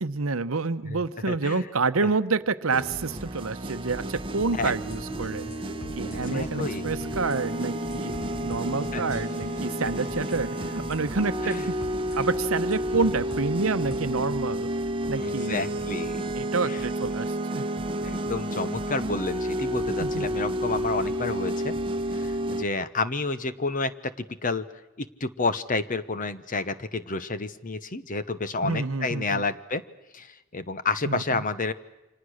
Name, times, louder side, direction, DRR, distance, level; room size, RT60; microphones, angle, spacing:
voice 1, 0.0-5.5 5.9-8.1 8.4-11.8 12.1-14.7 15.1-15.7 16.3-17.7 20.0-20.3 28.6-29.4 31.0-31.4, right 4 dB, 70° right, 12 dB, 0.9 m, -28 dB
voice 2, 1.3-1.6 4.5-4.7 6.1-6.8 8.9-9.2 11.4-11.7 15.1-16.3 16.7-16.8 18.0-21.7 22.1-24.7 25.0-29.8 30.1-31.7, left 3 dB, 40° left, 13 dB, 1.0 m, -30 dB
sound 1, 2.7-22.6, equal, 25° right, 1.1 m, -31 dB
sound 2, 4.4-13.6, equal, 60° left, 2.3 m, -46 dB
sound 3, 4.6-5.0 5.2-5.6 5.8-6.2 6.4-6.8 7.0-7.4 7.6-9.8 10.0-10.4 10.6-11.0 11.2-11.6 11.8-12.2 12.4-14.1, left 1 dB, 85° left, 6.2 m, -43 dB
29.0 x 25.5 x 6.5 m, 0.96 s
head